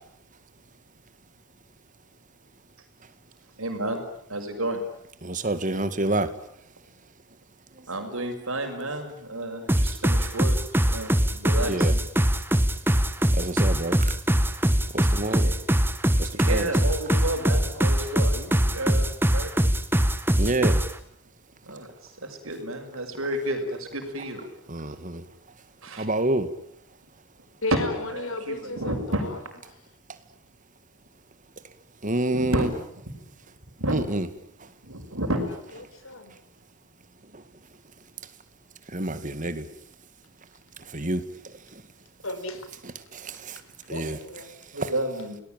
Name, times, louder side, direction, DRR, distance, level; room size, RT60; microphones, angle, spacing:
voice 1, 3.6-4.0 4.3-4.8 7.9-12.0 15.4-15.6 16.3-19.7 21.6-24.4 25.8-26.1 27.7-27.8 28.1-29.2 32.3-32.8 33.8-34.0 34.8-35.4 44.7-45.4, right 1 dB, 70° right, 6.2 m, -31 dB
voice 2, 5.4-6.3 11.7-11.9 13.4-14.0 15.2-15.4 16.5-16.7 20.4-20.8 26.0-26.5 32.0-32.7 33.9-34.2 38.9-39.1 39.4-39.5 41.0-41.2 43.9-44.1, right 1 dB, 35° right, 2.0 m, -26 dB
sound 1, 9.7-20.9, equal, 10° right, 1.2 m, -22 dB
voice 3, 27.6-29.4 35.9-36.4 42.2-42.7 43.9-44.5, left 2 dB, 65° left, 4.3 m, -34 dB
29.5 x 19.5 x 9.1 m
head